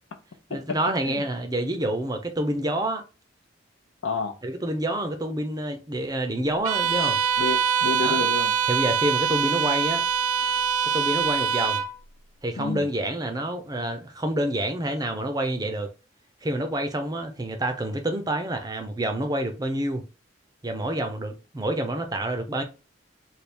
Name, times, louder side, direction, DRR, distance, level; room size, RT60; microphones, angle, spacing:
voice 1, 0.5-3.0 4.4-7.2 8.0-8.2 8.7-10.0 10.9-11.8 12.4-15.9 16.4-20.0 20.6-22.6, right 1 dB, 20° right, 0.5 m, -28 dB
voice 2, 4.0-4.3 7.4-8.5 12.6-12.9, left 4 dB, 80° left, 0.6 m, -29 dB
Bowed string instrument, 6.6-11.9, right 7 dB, 80° right, 0.4 m, -24 dB
3.4 x 2.2 x 4.2 m
head